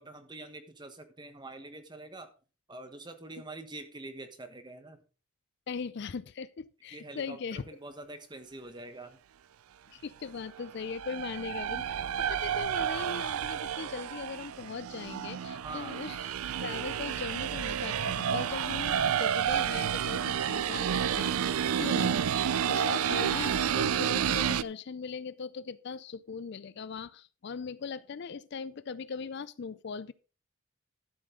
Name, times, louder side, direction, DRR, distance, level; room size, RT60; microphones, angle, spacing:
voice 1, 0.0-2.3 2.7-5.0 6.9-9.2 15.6-16.0 22.8-23.0, right 2 dB, 20° right, 1.2 m, -45 dB
voice 2, 5.7-7.6 9.9-16.3 16.6-22.2 22.7-30.1, left 5 dB, 50° left, 0.4 m, -39 dB
sound 1, 10.6-24.6, right 9 dB, 85° right, 0.4 m, -30 dB
12.5 x 7.6 x 3.8 m
head